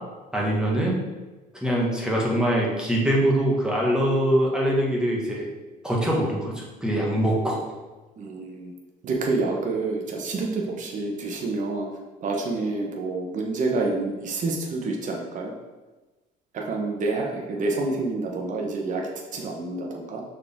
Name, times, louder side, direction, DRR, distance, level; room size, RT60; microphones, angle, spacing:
voice 1, 0.3-1.0 1.6-5.5 5.8-7.6, right 1 dB, 5° right, -4 dB, 1.7 m, -23 dB
voice 2, 8.2-8.7 9.0-11.9 12.2-15.5 16.5-20.2, right 3 dB, 50° right, 0 dB, 1.1 m, -28 dB
6.2 x 4.8 x 3.7 m, 1.2 s
cardioid pair, 110°, 17 cm